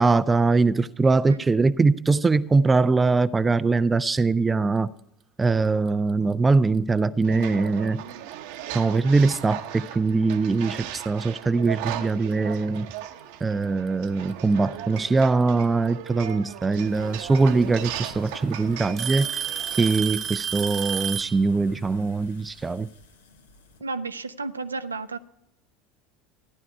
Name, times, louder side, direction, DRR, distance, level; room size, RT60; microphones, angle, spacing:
voice 1, 0.0-4.9 5.4-8.0 8.7-12.9 13.4-19.4 19.8-22.9, right 3 dB, 20° right, 0.4 m, -22 dB
sound 1, 7.2-19.9, right 11 dB, 60° right, 0.9 m, -37 dB
Alarm / Tick-tock, 7.4-7.7 8.5-8.6 9.4-9.5 11.2-11.3 12.5-12.6 13.9-14.3 16.1-16.2 17.4-17.5 17.8-18.3 19.0-21.4, right 8 dB, 35° right, 1.0 m, -30 dB
sound 2, 16.9-23.8, left 3 dB, 75° left, 1.2 m, -50 dB
voice 2, 23.8-25.2, right 3 dB, 85° right, 0.5 m, -32 dB
15.0 x 11.0 x 4.6 m
figure-of-eight pair, 70°, 0 cm